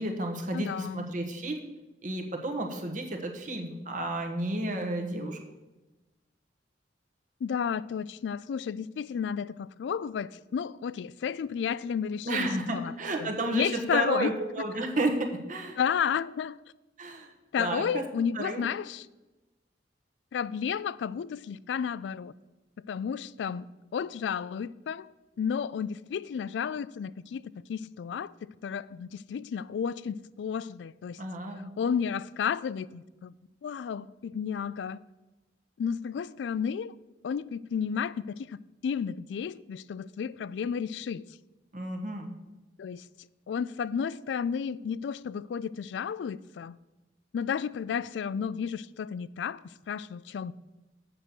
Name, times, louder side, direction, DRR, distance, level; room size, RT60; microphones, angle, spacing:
voice 1, 0.0-1.6 2.0-5.4 12.2-15.8 17.0-17.3 17.6-18.0 18.3-18.7 31.2-31.7 41.7-42.3, right 2 dB, 45° right, 1.2 m, -32 dB
voice 2, 0.5-1.0 7.4-12.9 13.2-14.3 15.8-16.6 17.5-19.1 20.3-22.3 22.9-23.7 23.9-25.1 25.4-31.2 31.8-33.3 33.6-35.0 35.8-36.9 37.2-38.6 38.8-41.2 42.8-43.1 43.5-46.8 47.3-50.5, left 7 dB, 75° left, 0.3 m, -32 dB
7.6 x 6.2 x 6.7 m
head